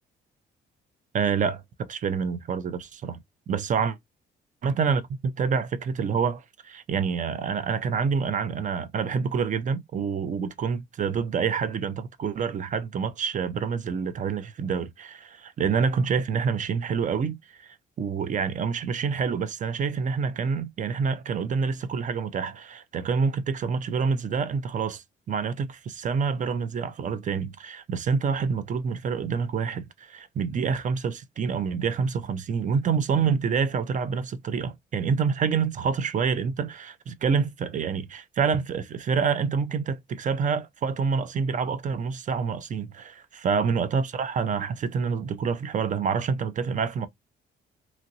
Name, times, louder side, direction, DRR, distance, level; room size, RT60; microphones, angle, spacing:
voice 1, 1.1-3.2 3.5-3.9 4.6-47.1, right 6 dB, 40° right, 0.4 m, -27 dB
2.9 x 2.5 x 2.7 m
cardioid pair, 90°, 20 cm